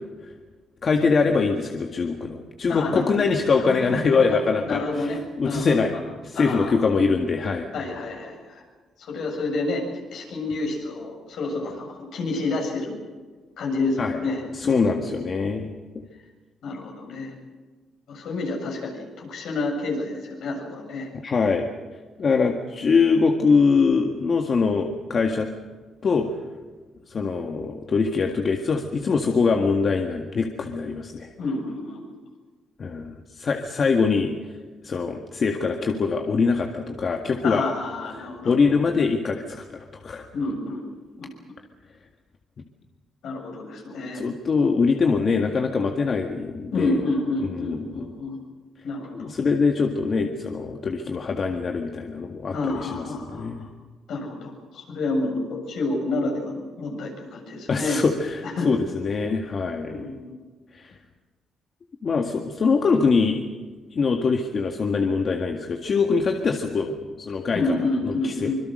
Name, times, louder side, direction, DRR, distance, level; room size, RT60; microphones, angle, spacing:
voice 1, 0.8-5.1 5.4-5.9 6.2-7.7 14.0-14.2 14.5-15.7 21.2-21.7 22.2-25.5 26.0-26.3 27.1-31.3 32.8-34.4 34.8-37.6 38.4-40.3 44.1-47.0 47.4-48.1 49.1-53.7 57.7-60.1 60.7-61.0 62.0-63.4 63.9-67.8 68.0-68.5, left 4 dB, 45° left, 3 dB, 1.9 m, -23 dB
voice 2, 2.7-3.2 3.6-4.4 4.7-5.8 6.3-6.8 7.7-8.6 9.0-9.9 10.1-13.1 13.6-14.9 16.6-17.3 18.1-21.1 31.4-32.1 37.4-38.6 40.3-40.9 41.2-41.3 43.2-44.3 46.7-48.4 48.8-49.3 52.5-53.7 54.1-58.0 58.4-58.7 59.8-60.4 67.5-68.6, left 2 dB, 70° left, 1 dB, 7.7 m, -29 dB
25.5 x 22.0 x 6.6 m, 1.4 s
cardioid pair, 90°, 0 cm